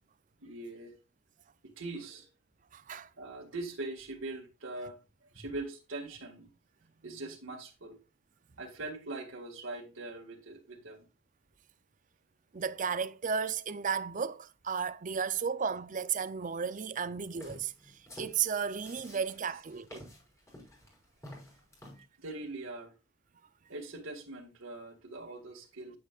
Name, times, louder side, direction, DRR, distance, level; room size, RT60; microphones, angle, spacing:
voice 1, 0.4-1.0 1.8-2.3 3.2-5.0 5.3-6.5 7.0-8.0 8.6-11.1 22.2-22.9 23.7-26.0, right 2 dB, 75° right, 1.9 m, -42 dB
voice 2, 2.7-3.1 12.5-20.1, right 6 dB, 40° right, 0.5 m, -34 dB
sound 1, 17.3-22.0, left 1 dB, 15° left, 5.4 m, -50 dB
9.8 x 9.8 x 2.4 m
head